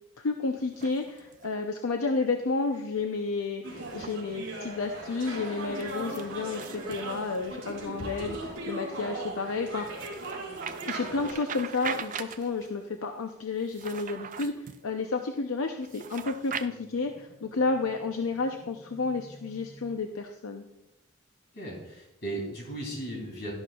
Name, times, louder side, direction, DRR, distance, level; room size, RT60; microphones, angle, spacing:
voice 1, 0.2-10.1 10.9-20.6, left 3 dB, 70° left, 5 dB, 0.6 m, -31 dB
sound 1, 0.6-1.6 3.8-4.2 5.8-7.7 9.9-12.7 13.6-14.8 15.8-16.7, right 7 dB, 35° right, 0.3 m, -40 dB
sound 2, 3.6-11.3, right 2 dB, 55° right, 3.1 m, -38 dB
sound 3, 9.6-10.4 16.4-20.0, right 1 dB, ahead, 0.8 m, -55 dB
voice 2, 21.5-23.5, right 1 dB, 50° left, -1 dB, 3.0 m, -36 dB
12.0 x 11.0 x 2.3 m, 0.91 s
head